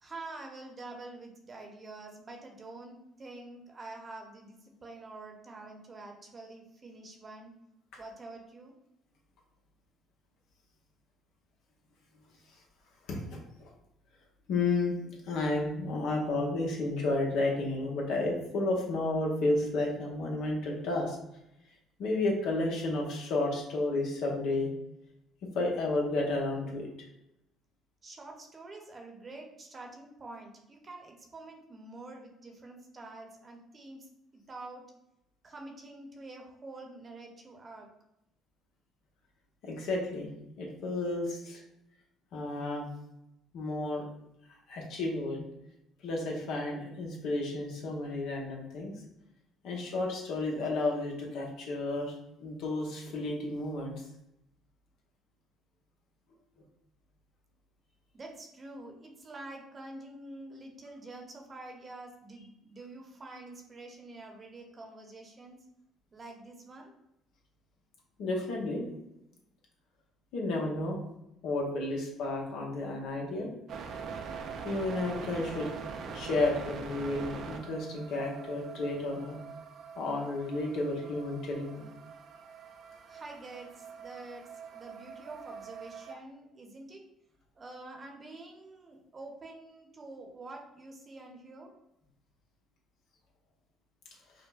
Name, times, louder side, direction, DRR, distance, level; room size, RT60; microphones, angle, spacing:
voice 1, 0.0-7.5 8.0-8.7 28.0-34.1 34.5-34.8 35.4-37.9 58.1-65.6 66.1-66.9 83.1-87.0 87.6-91.7, right 2 dB, 35° right, 1 dB, 0.8 m, -47 dB
voice 2, 13.1-13.4 14.5-14.9 15.3-21.2 22.0-24.7 25.5-26.9 39.6-40.3 40.6-41.6 42.3-42.9 43.5-44.0 44.7-45.5 46.0-48.9 49.6-52.1 52.4-53.9 68.2-68.9 70.3-71.0 71.4-73.5 74.6-75.7 76.1-79.4 80.0-81.9 86.1-86.2, left 2 dB, 70° left, -1 dB, 0.8 m, -32 dB
sound 1, 73.7-86.1, right 6 dB, 60° right, 0.4 m, -43 dB
4.9 x 2.1 x 2.3 m, 0.85 s
hypercardioid pair, 65°, 0 cm